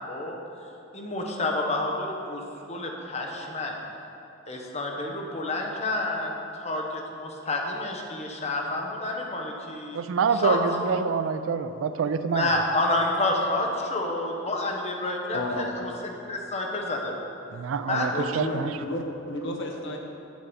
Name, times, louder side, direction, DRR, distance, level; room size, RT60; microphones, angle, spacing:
voice 1, 0.1-0.4 0.9-2.4 2.7-3.7 4.5-10.0 10.3-11.0 12.3-15.7 16.3-17.3 17.9-18.1, left 2 dB, 35° left, 1 dB, 0.9 m, -29 dB
voice 2, 9.9-12.5 17.5-18.7, right 6 dB, 80° right, 11 dB, 0.4 m, -26 dB
voice 3, 15.3-15.7 17.9-20.0, left 1 dB, 65° left, 2 dB, 0.9 m, -32 dB
7.2 x 5.8 x 5.0 m, 2.9 s
head